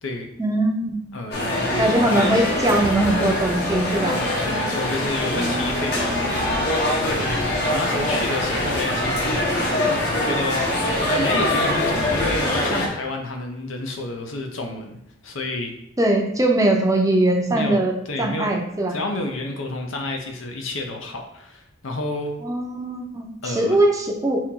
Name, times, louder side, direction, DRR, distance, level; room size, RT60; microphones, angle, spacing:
voice 1, 0.4-1.1 1.8-4.2 5.4-6.2 16.0-17.9 18.2-18.9 22.4-24.4, right 1 dB, 15° right, 2 dB, 0.6 m, -21 dB
voice 2, 1.1-2.2 4.0-6.6 7.0-7.3 7.7-10.6 11.0-15.0 15.2-15.7 17.5-18.5 18.9-22.3 23.4-23.8, left 2 dB, 80° left, 3 dB, 0.8 m, -30 dB
sound 1, 1.3-12.9, left 1 dB, 55° left, 1.0 m, -23 dB
4.4 x 2.9 x 3.7 m, 0.81 s
head